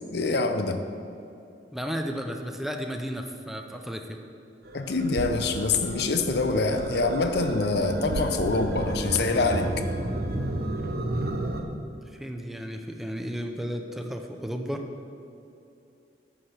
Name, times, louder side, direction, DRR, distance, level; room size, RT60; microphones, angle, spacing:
voice 1, 0.1-0.8 4.7-9.7, left 3 dB, 65° left, 7 dB, 0.7 m, -25 dB
voice 2, 1.7-4.2 12.1-14.8, equal, ahead, 3 dB, 0.6 m, -33 dB
sound 1, 4.6-11.6, right 1 dB, 60° right, 0.9 m, -32 dB
sound 2, 5.2-10.8, right 4 dB, 90° right, 0.4 m, -41 dB
10.0 x 5.9 x 6.6 m, 2.7 s
head